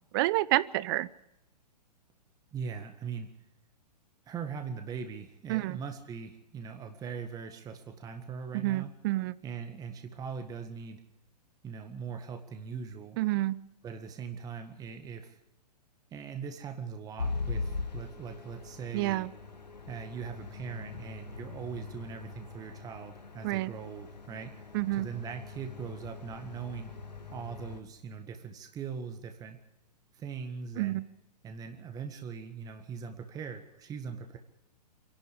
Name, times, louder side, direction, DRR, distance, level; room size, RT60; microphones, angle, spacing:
voice 1, 0.1-1.1 5.5-5.8 8.5-9.4 13.2-13.6 18.9-19.3 23.4-23.7 24.7-25.1 30.8-31.0, right 18 dB, 35° right, 19 dB, 0.7 m, -28 dB
voice 2, 2.5-3.3 4.2-8.9 9.4-11.0 11.6-13.2 13.8-15.4 16.1-19.3 19.9-24.5 25.0-26.9 27.3-29.6 30.1-31.0 31.4-34.4, right 6 dB, 15° right, 6 dB, 1.8 m, -41 dB
sound 1, 17.2-27.8, left 4 dB, 80° left, 2.5 m, -41 dB
27.0 x 11.5 x 8.6 m, 0.87 s
figure-of-eight pair, 115°, 21 cm